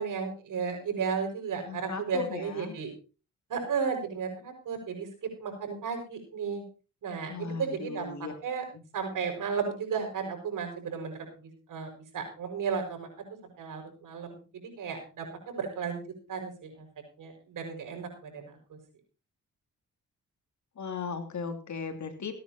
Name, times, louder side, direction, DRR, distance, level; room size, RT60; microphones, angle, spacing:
voice 1, 0.0-2.9 3.5-6.6 7.0-8.1 8.4-8.6 8.9-11.3 11.7-13.1 13.6-14.4 14.8-16.0 16.3-16.9 17.2-18.5, right 6 dB, 80° right, 4 dB, 5.9 m, -34 dB
voice 2, 1.6-2.8 7.3-8.3 20.8-22.3, left 5 dB, 65° left, 7 dB, 3.0 m, -37 dB
16.5 x 10.0 x 4.4 m, 0.34 s
cardioid pair, 65°, 31 cm